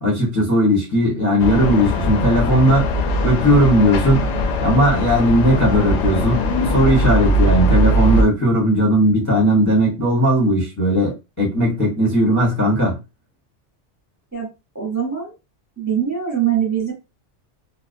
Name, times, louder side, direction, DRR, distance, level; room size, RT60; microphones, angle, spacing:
voice 1, 0.0-2.9 3.2-4.3 4.6-13.0, equal, 15° left, 0.7 m, -17 dB
sound 1, 1.4-8.2, equal, 75° left, 0.8 m, -20 dB
voice 2, 14.7-15.3 15.8-16.9, right 9 dB, 15° right, 0.7 m, -22 dB
2.4 x 2.1 x 2.5 m
omnidirectional pair, 1.2 m